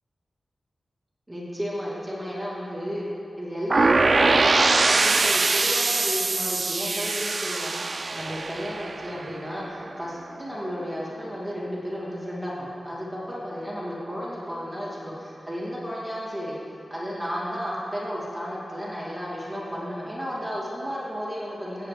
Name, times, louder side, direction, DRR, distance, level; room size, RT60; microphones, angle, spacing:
voice 1, 1.3-3.1 3.4-7.7 8.1-16.5 16.9-21.9, equal, 5° right, -7 dB, 2.3 m, -33 dB
supernova fx, 3.7-9.6, right 3 dB, 45° right, 0.4 m, -23 dB
17.5 x 8.4 x 3.3 m, 2.8 s
wide cardioid pair, 115°, 0 cm